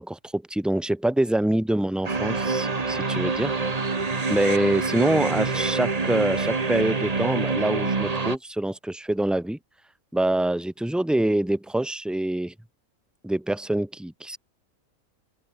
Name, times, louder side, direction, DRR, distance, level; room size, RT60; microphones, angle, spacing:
voice 1, 0.0-3.6 4.3-9.6 10.1-12.5 13.2-14.4, right 1 dB, ahead, 0.8 m, -25 dB
sound 1, 2.0-8.4, right 4 dB, 25° right, 1.4 m, -26 dB
open air
omnidirectional pair, 1.5 m